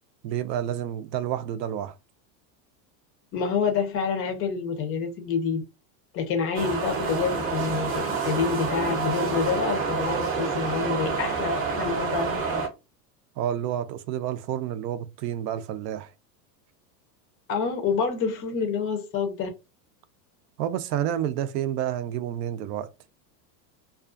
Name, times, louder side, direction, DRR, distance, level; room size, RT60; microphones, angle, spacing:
voice 1, 0.2-2.0 13.4-16.1 20.6-22.9, right 10 dB, 75° right, 0.6 m, -29 dB
voice 2, 3.3-5.6 6.1-12.6 17.5-19.5, left 6 dB, 30° left, 0.4 m, -27 dB
sound 1, 6.5-12.7, right 5 dB, 25° right, 0.7 m, -28 dB
2.4 x 2.3 x 2.4 m
supercardioid pair, 135°, 50 cm